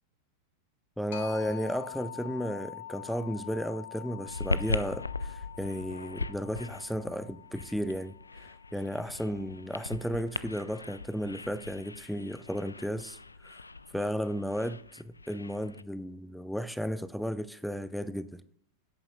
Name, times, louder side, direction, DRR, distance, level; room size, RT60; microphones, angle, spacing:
voice 1, 1.0-8.1 8.4-13.2 13.4-13.6 13.9-18.4, equal, ahead, 0.5 m, -34 dB
sound 1, 1.1-10.5, left 12 dB, 55° left, 1.3 m, -46 dB
sound 2, 4.3-15.8, left 3 dB, 80° left, 0.3 m, -39 dB
17.0 x 8.6 x 2.2 m
figure-of-eight pair, 90°, 0 cm